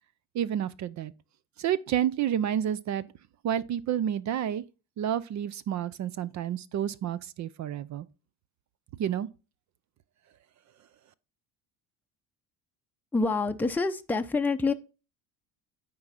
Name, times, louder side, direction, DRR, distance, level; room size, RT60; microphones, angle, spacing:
voice 1, 0.3-1.1 1.6-3.1 3.4-4.6 5.0-8.0 9.0-9.3, right 10 dB, 45° right, 0.6 m, -29 dB
voice 2, 13.1-14.7, left 3 dB, 5° left, 0.6 m, -26 dB
9.5 x 3.9 x 5.6 m
supercardioid pair, 90°, 39 cm